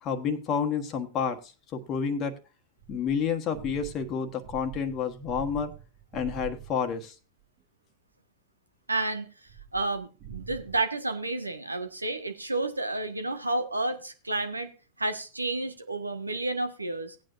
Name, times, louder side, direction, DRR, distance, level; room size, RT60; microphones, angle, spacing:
voice 1, 0.0-2.3 2.9-5.7 6.1-7.1, left 6 dB, 35° left, 5 dB, 1.4 m, -30 dB
sound 1, 2.8-7.0 9.5-10.8, right 9 dB, 40° right, 1.7 m, -44 dB
voice 2, 8.9-9.3 9.7-14.7 15.0-17.1, right 2 dB, 80° right, 7 dB, 1.4 m, -31 dB
17.5 x 9.0 x 2.6 m, 0.33 s
figure-of-eight pair, 90°, 0 cm